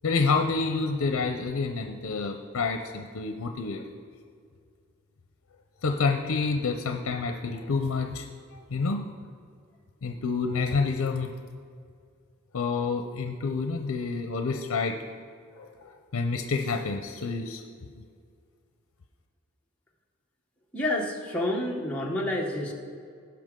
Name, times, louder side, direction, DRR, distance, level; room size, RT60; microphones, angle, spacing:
voice 1, 0.0-3.8 5.8-9.1 10.0-11.3 12.5-15.0 15.6-17.6 18.0-18.1, left 4 dB, 80° left, 4 dB, 0.6 m, -28 dB
voice 2, 20.7-22.7, left 1 dB, 5° left, -3 dB, 1.0 m, -29 dB
17.0 x 5.9 x 3.7 m, 2.2 s
head